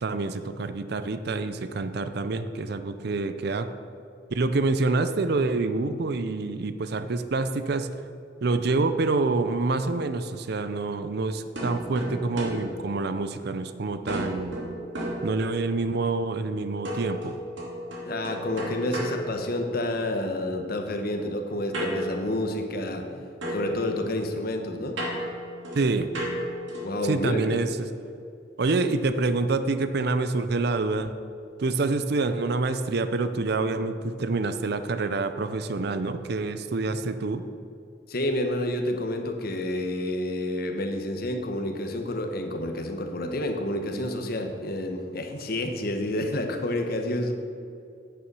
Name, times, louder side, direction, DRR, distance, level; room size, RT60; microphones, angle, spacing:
voice 1, 0.0-3.7 4.3-7.9 8.4-14.6 15.2-17.4 25.7-26.1 27.0-27.9 28.6-31.2 31.6-37.4, right 3 dB, 55° right, 10 dB, 0.5 m, -27 dB
sound 1, 11.6-13.6 14.1-15.9 16.8-20.1 21.7-23.1 23.4-27.1, equal, 70° right, 2.5 m, -34 dB
voice 2, 18.0-23.0 23.5-25.0 26.8-27.4 38.1-47.3, left 1 dB, 50° left, 4 dB, 1.1 m, -29 dB
9.5 x 6.8 x 6.1 m, 2.5 s
head